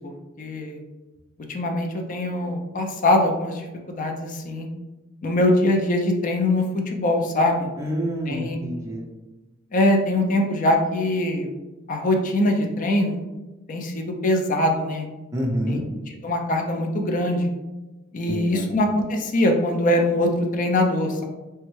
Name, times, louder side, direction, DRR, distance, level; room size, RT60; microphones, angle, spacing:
voice 1, 0.4-0.8 1.5-3.6 3.9-4.7 5.2-7.7 8.3-8.6 9.7-11.5 11.9-13.2 13.7-15.1 15.7-15.8 16.2-17.5 18.1-21.2, left 1 dB, 40° left, 3 dB, 0.4 m, -22 dB
voice 2, 7.8-9.0 15.3-15.8 18.3-18.7, equal, 15° right, -3 dB, 0.5 m, -27 dB
3.3 x 2.1 x 3.1 m, 1.1 s
head